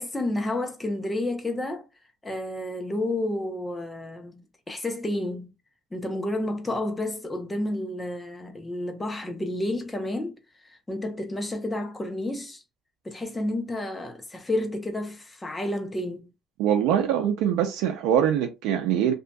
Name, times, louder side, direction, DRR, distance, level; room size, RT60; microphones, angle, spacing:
voice 1, 0.0-1.8 2.2-5.5 5.9-12.6 13.0-16.3, left 1 dB, 15° left, 0.7 m, -30 dB
voice 2, 16.6-19.1, right 9 dB, 85° right, 0.4 m, -23 dB
2.7 x 2.5 x 2.2 m
cardioid pair, 110°, 0 cm